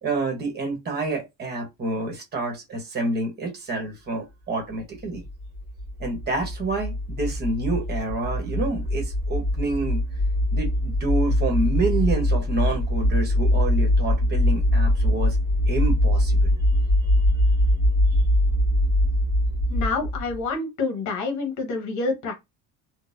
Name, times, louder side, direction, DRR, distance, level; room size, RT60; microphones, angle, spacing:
voice 1, 0.0-5.2 6.0-10.0 10.5-15.4 15.7-16.5, right 2 dB, 30° right, 1.1 m, -28 dB
sound 1, 5.1-20.4, left 1 dB, 10° left, 1.7 m, -22 dB
voice 2, 19.7-22.3, left 3 dB, 55° left, 1.1 m, -27 dB
3.8 x 2.2 x 2.6 m
cardioid pair, 175°, 34 cm